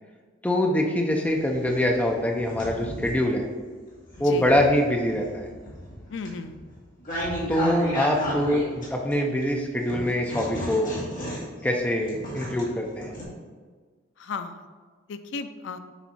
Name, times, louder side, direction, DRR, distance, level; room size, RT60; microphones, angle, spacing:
voice 1, 0.4-3.5 4.2-5.5 7.5-10.9 11.6-13.1, left 1 dB, 5° left, 1 dB, 0.5 m, -24 dB
sound 1, 1.1-3.3 3.9-9.4 9.9-13.2, equal, 40° left, 1.8 m, -34 dB
voice 2, 4.2-4.6 6.1-6.6 14.2-14.6 15.1-15.8, left 4 dB, 65° left, 9 dB, 0.4 m, -35 dB
7.2 x 3.5 x 4.2 m, 1.5 s
head